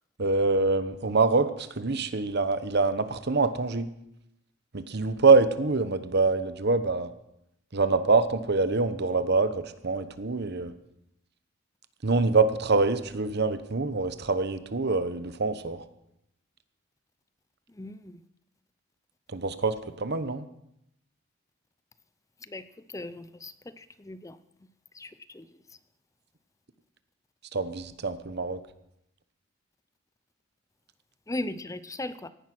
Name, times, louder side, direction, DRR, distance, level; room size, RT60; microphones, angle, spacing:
voice 1, 0.2-3.9 4.7-7.1 7.7-10.7 12.0-15.9 19.3-20.5 27.5-28.6, right 3 dB, 55° right, 12 dB, 1.0 m, -25 dB
voice 2, 17.7-18.2 22.4-24.4 24.9-25.8 31.3-32.3, left 1 dB, 15° left, 14 dB, 0.6 m, -38 dB
17.0 x 11.0 x 6.1 m, 0.81 s
head